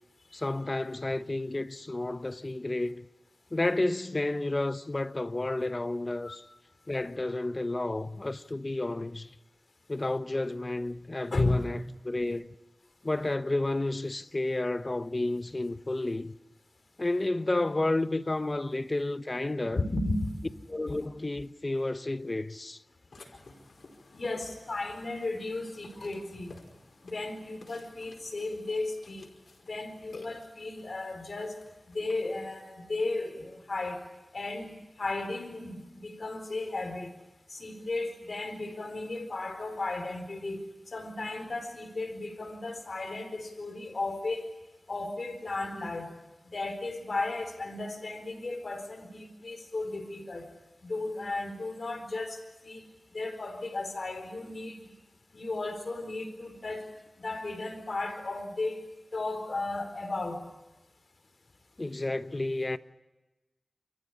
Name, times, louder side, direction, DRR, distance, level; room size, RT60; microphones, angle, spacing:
voice 1, 0.3-3.1 3.5-6.4 6.9-9.4 9.9-12.5 13.0-16.3 17.0-19.9 20.7-22.8 61.8-62.8, left 2 dB, 35° left, 1.1 m, -31 dB
voice 2, 11.3-11.6 19.8-20.3 24.1-26.6 27.0-29.3 29.7-31.6 31.9-34.0 34.3-37.1 37.5-44.5 44.9-46.1 46.5-50.5 50.8-52.9 53.1-54.9 55.3-56.9 57.2-58.8 59.1-60.4, left 2 dB, 65° left, 4.3 m, -34 dB
Burping eructation, 23.1-32.2, left 3 dB, 80° left, 5.1 m, -54 dB
29.5 x 15.0 x 10.0 m
wide cardioid pair, 60°, 0 cm